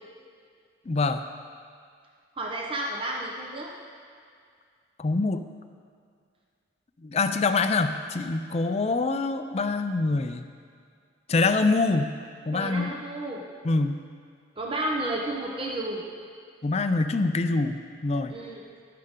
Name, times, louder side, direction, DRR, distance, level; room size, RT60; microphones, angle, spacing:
voice 1, 0.9-1.2 5.0-5.5 7.0-10.5 11.3-12.1 12.5-13.0 13.6-14.0 16.6-18.3, left 3 dB, 35° left, 8 dB, 0.4 m, -25 dB
voice 2, 2.4-3.7 12.5-13.4 14.6-16.0 18.3-18.6, right 1 dB, 25° right, -2 dB, 0.9 m, -31 dB
17.0 x 6.7 x 3.7 m, 2.2 s
head